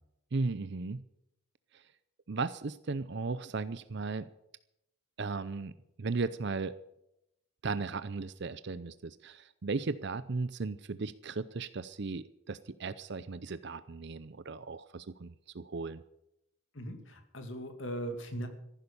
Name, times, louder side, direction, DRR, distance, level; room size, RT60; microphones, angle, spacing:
voice 1, 0.3-1.0 1.7-1.9 2.3-4.3 5.2-5.7 6.0-6.7 7.6-16.0, right 3 dB, 50° right, 14 dB, 0.6 m, -36 dB
voice 2, 16.7-18.5, right 1 dB, 60° left, 6 dB, 2.5 m, -39 dB
14.5 x 11.5 x 6.9 m, 0.82 s
head